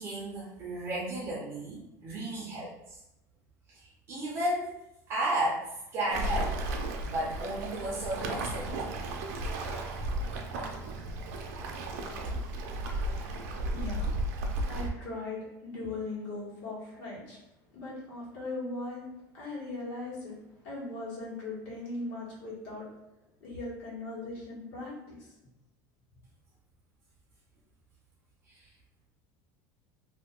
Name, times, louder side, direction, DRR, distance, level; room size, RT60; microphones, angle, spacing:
voice 1, 0.0-3.0 3.7-4.7 5.1-6.6 7.0-8.7 28.5-28.7, right 1 dB, 30° right, -4 dB, 0.5 m, -34 dB
Waves surf, 6.1-14.9, right 1 dB, 90° right, 0.5 m, -34 dB
voice 2, 13.7-14.1 14.7-17.4 17.7-19.0 19.3-20.4 20.6-22.8 23.4-24.9, left 2 dB, 60° left, -6 dB, 1.4 m, -39 dB
2.7 x 2.2 x 3.6 m, 0.91 s
cardioid pair, 170°, 8 cm